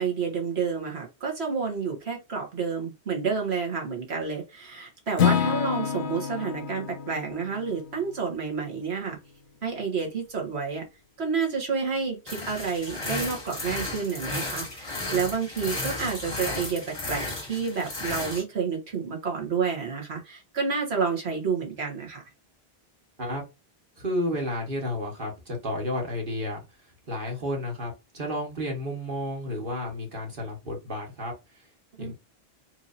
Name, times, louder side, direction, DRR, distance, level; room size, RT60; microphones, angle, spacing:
voice 1, 0.0-9.2 9.6-10.9 11.2-22.2 32.0-32.1, right 5 dB, 85° right, 1.7 m, -29 dB
Acoustic guitar / Strum, 5.2-9.2, left 8 dB, 85° left, 1.0 m, -29 dB
sound 1, 12.3-18.4, left 2 dB, 25° left, 1.7 m, -34 dB
voice 2, 24.0-26.6 27.1-31.3 32.0-32.1, left 1 dB, 55° right, 1.6 m, -31 dB
4.6 x 2.8 x 2.6 m
omnidirectional pair, 1.1 m